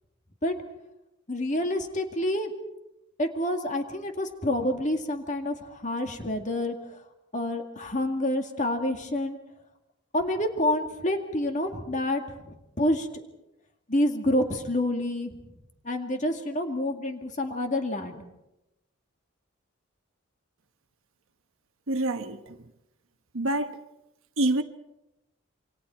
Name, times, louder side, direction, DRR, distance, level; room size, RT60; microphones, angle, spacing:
voice 1, 1.3-2.5 3.2-7.0 7.3-9.4 10.1-13.1 13.9-15.4 15.8-18.2, left 1 dB, 35° left, 2.1 m, -28 dB
voice 2, 21.9-22.6 23.3-23.8 24.4-24.6, right 1 dB, 70° right, 1.2 m, -26 dB
28.0 x 25.0 x 4.4 m
head